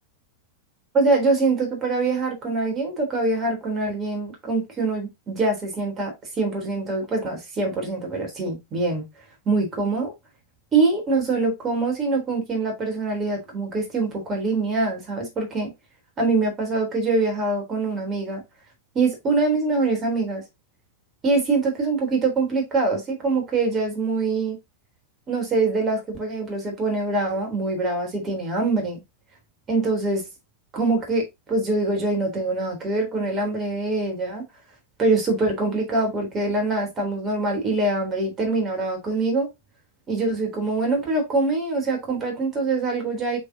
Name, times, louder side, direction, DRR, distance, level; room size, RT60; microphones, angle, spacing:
voice 1, 0.9-9.1 9.5-10.1 10.7-15.7 16.2-18.4 18.9-20.4 21.2-24.6 25.3-29.0 29.7-30.2 30.7-34.4 35.0-39.5 40.1-43.4, right 3 dB, 25° right, 3.7 m, -24 dB
7.4 x 4.7 x 2.9 m
figure-of-eight pair, 90°, 0 cm